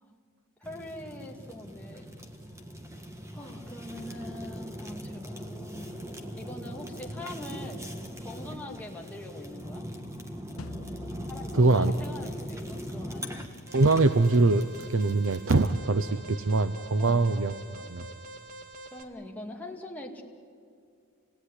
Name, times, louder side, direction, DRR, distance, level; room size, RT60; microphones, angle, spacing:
voice 1, 0.6-2.1 3.3-6.0 6.4-7.9 8.2-9.8 11.3-13.4 17.0-17.2 18.9-20.2, left 1 dB, 5° left, 0 dB, 2.2 m, -42 dB
Fire, 0.6-15.8, equal, 15° right, 1.6 m, -41 dB
sound 1, 10.6-15.7, left 3 dB, 80° left, 0.9 m, -49 dB
voice 2, 11.5-11.9 13.7-18.0, right 3 dB, 70° right, 11 dB, 0.7 m, -23 dB
Alarm, 13.7-19.0, right 2 dB, 40° right, 1.9 m, -46 dB
28.0 x 19.0 x 9.9 m, 2.3 s
head